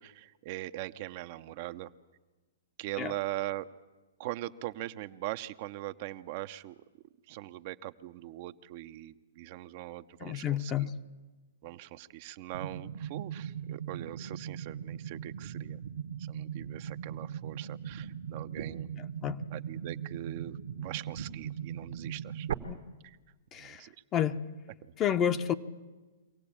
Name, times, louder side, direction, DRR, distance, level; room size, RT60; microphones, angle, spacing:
voice 1, 0.0-1.9 2.8-3.7 4.2-6.7 7.3-10.9 11.6-15.8 16.3-18.9 19.5-22.5 23.0-23.2 23.6-23.9, right 16 dB, 50° right, 10 dB, 0.7 m, -41 dB
voice 2, 10.2-10.9 19.0-19.4 22.7-22.8 23.5-23.8 24.1-24.4 25.0-25.5, left 9 dB, 25° left, 10 dB, 0.8 m, -30 dB
sound 1, 12.5-22.5, right 8 dB, 70° right, 1.3 m, -39 dB
24.5 x 16.5 x 8.7 m, 1.2 s
hypercardioid pair, 125°, 0 cm